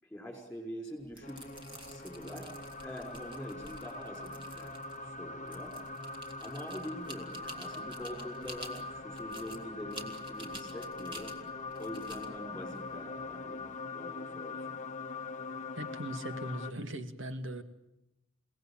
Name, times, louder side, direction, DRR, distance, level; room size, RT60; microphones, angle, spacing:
voice 1, 0.0-1.5 1.9-2.5 2.8-4.8 5.0-5.7 6.4-11.3 11.8-14.8, equal, 5° left, 4 dB, 5.7 m, -44 dB
sound 1, 1.0-13.8, right 1 dB, 25° right, 3.2 m, -51 dB
sound 2, 1.2-16.7, left 3 dB, 35° left, 1.0 m, -42 dB
voice 2, 15.8-17.6, right 1 dB, 65° right, 8 dB, 2.4 m, -39 dB
30.0 x 18.0 x 9.0 m, 0.91 s
head